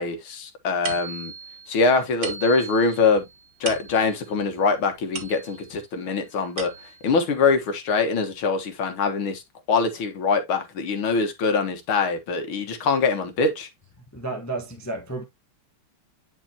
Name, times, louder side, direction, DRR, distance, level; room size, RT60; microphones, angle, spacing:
voice 1, 0.0-1.3 1.7-3.2 3.6-6.7 7.0-9.4 9.7-13.7, left 4 dB, 70° left, 2.2 m, -23 dB
sound 1, 0.8-5.8 6.3-7.2, right 5 dB, 55° right, 2.0 m, -38 dB
voice 2, 14.1-15.2, right 2 dB, 15° left, 0.6 m, -31 dB
9.7 x 4.7 x 2.8 m
omnidirectional pair, 2.4 m